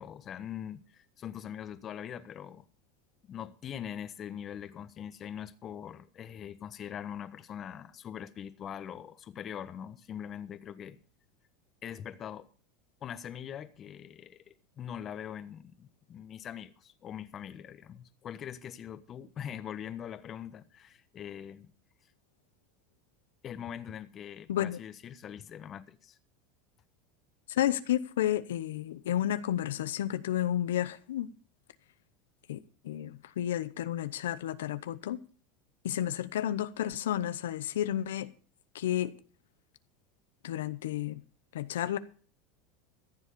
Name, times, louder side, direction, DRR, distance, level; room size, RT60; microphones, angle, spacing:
voice 1, 0.0-2.7 3.3-11.0 11.8-12.5 13.0-21.7 23.4-26.2, left 9 dB, 35° left, 1.1 m, -42 dB
voice 2, 27.5-31.3 32.5-32.6 32.8-35.2 35.8-38.3 38.7-39.1 40.4-41.2 41.5-42.0, left 11 dB, 85° left, 0.8 m, -31 dB
14.5 x 7.2 x 6.8 m
supercardioid pair, 110°, 0 cm